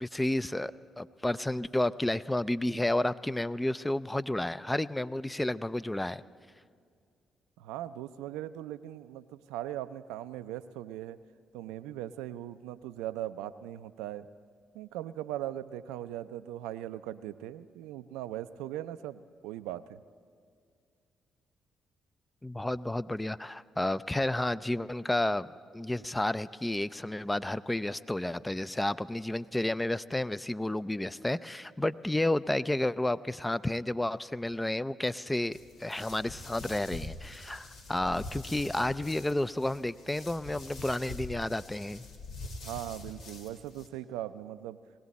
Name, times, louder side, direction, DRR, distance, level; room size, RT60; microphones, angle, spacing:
voice 1, 0.0-6.2 22.4-25.5 25.7-42.1, left 1 dB, 15° left, 16 dB, 0.5 m, -31 dB
voice 2, 7.6-11.2 11.5-14.3 14.7-20.0 42.6-44.8, right 13 dB, 80° right, 14 dB, 0.4 m, -39 dB
sound 1, 35.5-43.9, left 2 dB, 70° left, 1.5 m, -45 dB
20.5 x 16.5 x 4.2 m, 2.2 s
hypercardioid pair, 45°, 0 cm